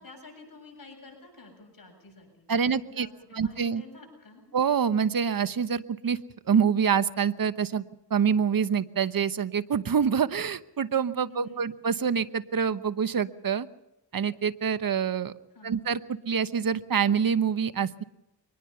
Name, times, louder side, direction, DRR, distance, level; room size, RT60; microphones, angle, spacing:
voice 1, 0.0-4.4 11.3-11.7 15.5-15.8, left 3 dB, 50° left, 2 dB, 7.8 m, -49 dB
voice 2, 2.5-3.1 3.3-3.8 4.5-6.2 6.5-7.8 8.1-13.7 14.1-15.3 15.6-16.0 16.3-18.0, right 7 dB, 55° right, 14 dB, 1.0 m, -26 dB
23.5 x 20.0 x 5.7 m, 0.92 s
cardioid pair, 65°, 42 cm